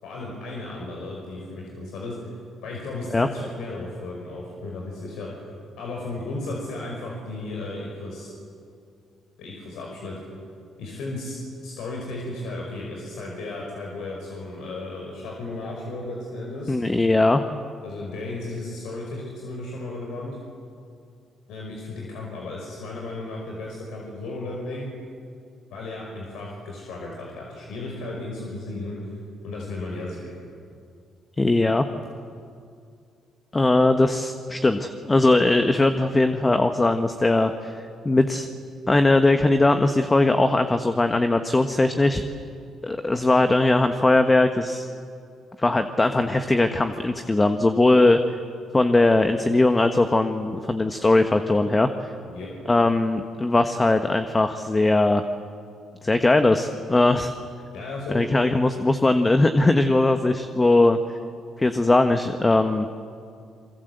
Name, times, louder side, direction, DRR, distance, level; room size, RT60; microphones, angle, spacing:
voice 1, 0.0-2.3 2.6-5.3 5.8-8.3 9.4-10.2 10.8-11.4 11.6-16.7 17.8-20.4 21.5-24.9 25.7-29.0 29.4-30.4 52.2-52.5 57.7-58.2, left 2 dB, 85° left, -2 dB, 5.4 m, -34 dB
voice 2, 16.7-17.4 31.4-31.8 33.5-37.7 38.0-38.5 38.9-42.2 42.8-44.9 45.6-48.2 48.7-52.1 52.7-55.2 56.0-57.3 58.1-61.0 61.6-62.9, left 2 dB, 20° left, 7 dB, 1.3 m, -20 dB
28.0 x 23.0 x 8.1 m, 2.4 s
cardioid pair, 90°, 0 cm